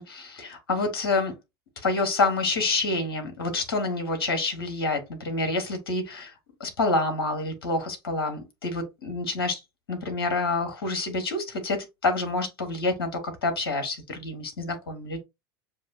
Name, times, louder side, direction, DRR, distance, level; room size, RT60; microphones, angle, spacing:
voice 1, 0.0-1.3 1.8-6.3 6.6-9.6 9.9-15.2, left 3 dB, 65° left, 1.2 m, -28 dB
6.8 x 2.6 x 2.4 m
figure-of-eight pair, 75°, 13 cm